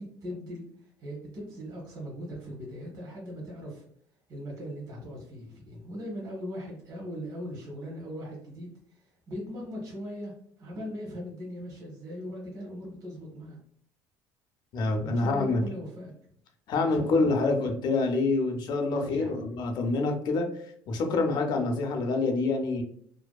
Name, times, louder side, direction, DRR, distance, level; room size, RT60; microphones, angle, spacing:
voice 1, 0.0-3.8 4.3-13.6 15.0-16.1 16.8-17.5 18.9-19.4, equal, 45° right, -2 dB, 0.9 m, -40 dB
voice 2, 14.7-15.6 16.7-20.5 20.9-22.8, left 3 dB, 60° left, 4 dB, 0.5 m, -26 dB
2.6 x 2.2 x 2.2 m, 0.63 s
supercardioid pair, 100°, 8 cm